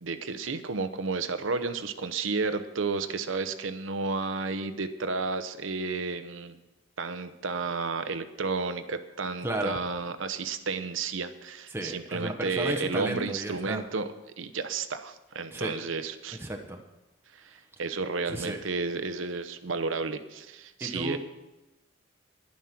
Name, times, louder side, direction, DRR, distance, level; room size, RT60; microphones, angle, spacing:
voice 1, 0.0-6.5 7.0-16.4 17.3-21.2, right 4 dB, 75° right, 10 dB, 0.8 m, -32 dB
voice 2, 9.4-9.8 11.7-13.8 15.5-15.7 16.4-16.8 18.3-18.6 20.8-21.2, right 1 dB, 10° right, 2 dB, 1.0 m, -33 dB
11.0 x 11.0 x 5.9 m, 1.0 s
head